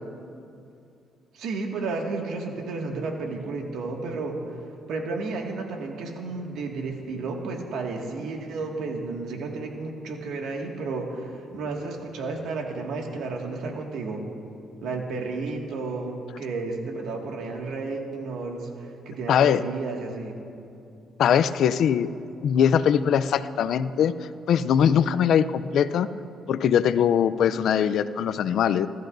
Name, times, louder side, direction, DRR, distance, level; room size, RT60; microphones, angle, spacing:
voice 1, 1.3-4.6 4.9-14.2 14.8-20.4, right 3 dB, 80° right, 1 dB, 2.0 m, -32 dB
voice 2, 19.3-19.6 21.2-22.1 22.4-24.1 24.5-26.1 26.5-28.9, left 8 dB, 70° left, 13 dB, 0.5 m, -21 dB
29.0 x 13.5 x 2.6 m, 2.6 s
cardioid pair, 90°, 0 cm